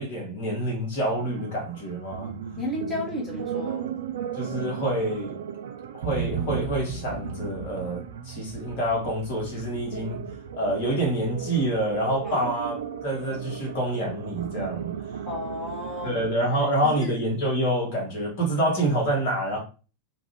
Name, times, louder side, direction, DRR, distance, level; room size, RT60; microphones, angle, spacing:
voice 1, 0.0-2.4 4.3-5.3 5.9-10.3 10.5-14.9 16.0-19.6, right 1 dB, 45° left, 1.6 m, -27 dB
sound 1, 1.0-16.3, right 8 dB, 60° right, 0.3 m, -35 dB
voice 2, 2.6-3.9 12.2-12.5 15.3-17.1, left 1 dB, 15° left, 1.3 m, -33 dB
3.0 x 2.5 x 3.3 m
figure-of-eight pair, 90°, 0 cm